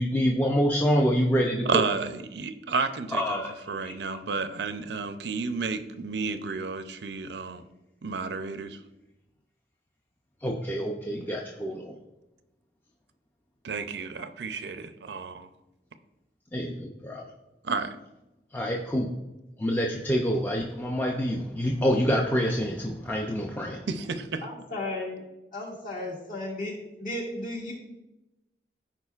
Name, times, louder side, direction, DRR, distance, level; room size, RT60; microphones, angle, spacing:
voice 1, 0.0-1.8 3.1-4.0 10.4-11.9 16.5-17.3 18.5-19.1 19.6-23.9, equal, 10° left, -1 dB, 0.5 m, -27 dB
voice 2, 1.7-3.4 3.7-7.7 8.0-8.8 13.6-15.5 17.6-18.0 23.9-24.5, right 4 dB, 75° right, 10 dB, 0.5 m, -31 dB
voice 3, 24.4-25.2 25.5-26.7 27.0-27.7, left 2 dB, 50° left, -3 dB, 2.0 m, -34 dB
14.0 x 4.9 x 2.4 m, 0.98 s
head